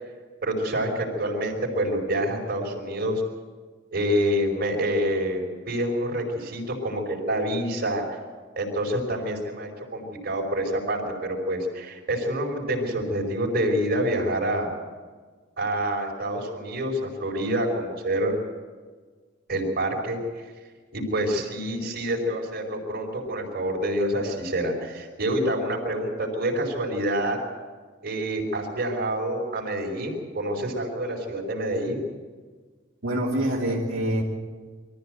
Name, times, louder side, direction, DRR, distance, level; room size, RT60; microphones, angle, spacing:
voice 1, 0.4-3.2 3.9-8.2 8.6-14.7 15.6-18.3 19.5-20.2 20.9-27.4 28.0-32.0, right 1 dB, 50° right, 1 dB, 5.3 m, -27 dB
voice 2, 33.0-34.2, right 1 dB, 80° right, -5 dB, 3.2 m, -25 dB
24.0 x 14.5 x 8.1 m, 1.5 s
head